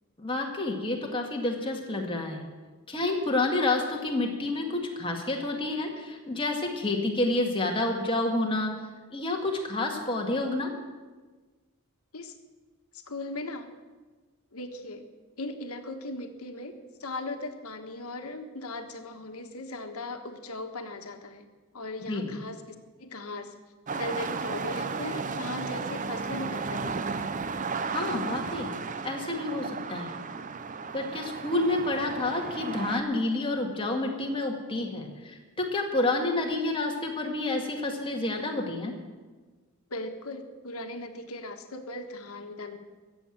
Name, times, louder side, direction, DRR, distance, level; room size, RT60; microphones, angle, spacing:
voice 1, 0.2-2.4 2.9-8.7 9.1-10.7 22.1-22.3 27.9-28.7 29.0-30.1 30.9-38.9, left 2 dB, 25° left, 1 dB, 2.0 m, -29 dB
voice 2, 12.9-13.7 14.5-15.0 15.4-16.7 17.0-21.5 21.7-23.5 23.9-27.3 39.9-42.8, left 2 dB, 85° left, 6 dB, 1.4 m, -38 dB
sound 1, 23.9-33.0, right 4 dB, 35° right, 0.6 m, -34 dB
15.0 x 7.8 x 9.0 m, 1.3 s
head